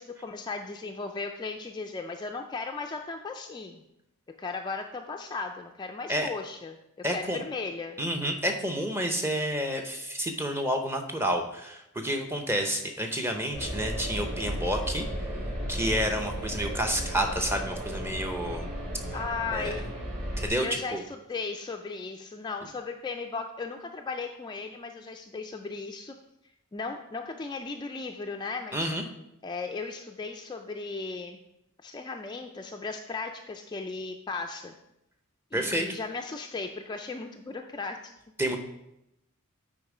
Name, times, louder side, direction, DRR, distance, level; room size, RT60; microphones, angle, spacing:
voice 1, 0.0-3.8 4.4-6.7 7.1-8.0 19.1-19.9 20.6-26.2 26.7-28.9 29.4-31.4 31.8-34.7 35.5-38.1, left 4 dB, 20° left, 3 dB, 0.3 m, -36 dB
voice 2, 7.0-7.4 8.0-15.0 15.7-18.7 19.5-19.8 20.4-21.0 28.7-29.0 35.5-36.0 38.4-38.6, equal, 10° right, 5 dB, 0.7 m, -29 dB
sound 1, 13.5-20.5, equal, 40° right, 2.9 m, -34 dB
8.5 x 4.4 x 4.8 m, 0.86 s
head